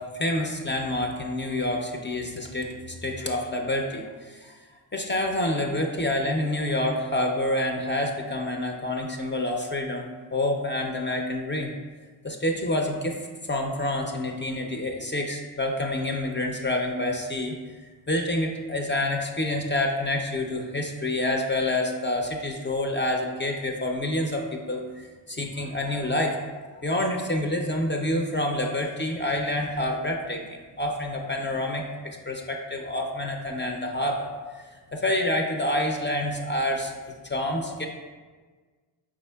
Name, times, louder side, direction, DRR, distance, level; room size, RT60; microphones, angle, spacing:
voice 1, 0.0-4.6 4.9-11.7 12.2-13.2 13.5-17.5 18.1-26.4 26.8-34.6 34.9-36.9 37.2-37.9, left 1 dB, 25° left, 2 dB, 0.4 m, -28 dB
4.8 x 3.6 x 2.2 m, 1.4 s
cardioid pair, 40°, 45 cm